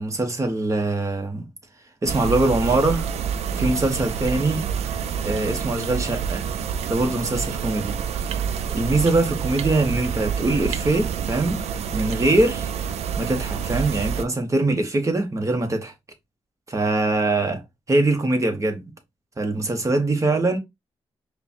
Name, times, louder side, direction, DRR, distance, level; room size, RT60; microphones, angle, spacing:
voice 1, 0.0-1.4 2.0-3.1 3.5-4.7 5.2-6.5 6.9-8.0 8.7-11.6 11.9-12.7 13.2-15.9 16.7-17.6 17.9-18.8 19.4-20.6, right 2 dB, 30° right, 1.2 m, -22 dB
sound 1, 2.1-14.2, right 7 dB, 85° right, 0.4 m, -28 dB
4.9 x 2.3 x 2.9 m
cardioid pair, 70°, 10 cm